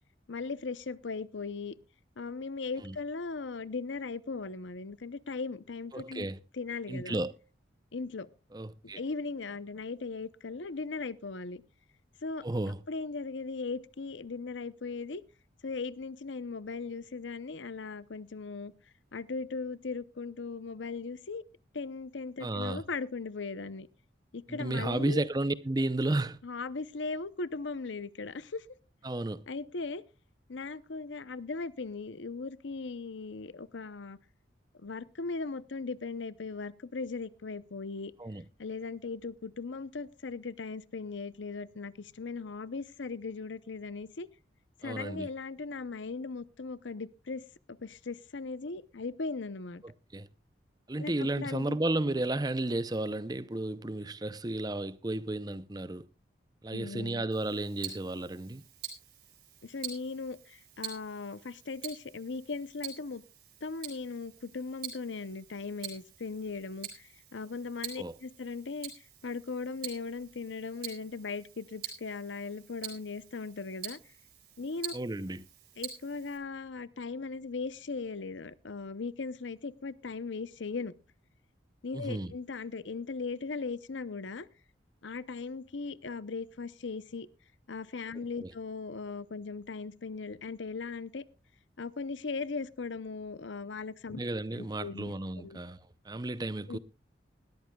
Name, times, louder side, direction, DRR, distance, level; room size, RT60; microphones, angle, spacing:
voice 1, 0.3-1.7 2.2-6.3 6.5-7.2 7.9-8.3 8.8-11.6 12.2-12.4 12.9-15.2 15.6-18.7 19.1-21.4 21.7-23.9 24.3-25.2 26.4-28.7 29.5-30.0 30.5-34.2 34.7-38.1 38.6-44.3 44.8-47.4 47.7-49.8 51.0-51.8 56.7-57.2 59.6-63.2 63.6-68.9 69.2-74.0 74.6-74.9 75.8-80.9 81.8-84.5 85.0-87.3 87.7-91.2 91.8-94.2 94.6-95.6 96.7-96.8, left 4 dB, 80° left, 0.7 m, -38 dB
voice 2, 5.9-6.4 6.9-7.3 8.5-9.0 12.4-12.8 22.4-22.8 24.5-26.4 29.0-29.4 38.2-38.4 44.8-45.3 49.8-50.3 50.9-56.1 56.6-58.6 68.0-68.1 74.9-75.4 81.9-82.3 88.4-88.5 94.2-96.8, right 2 dB, 20° right, 0.6 m, -33 dB
Tick-tock, 57.3-76.4, right 10 dB, 55° right, 4.1 m, -46 dB
20.0 x 13.5 x 2.3 m
head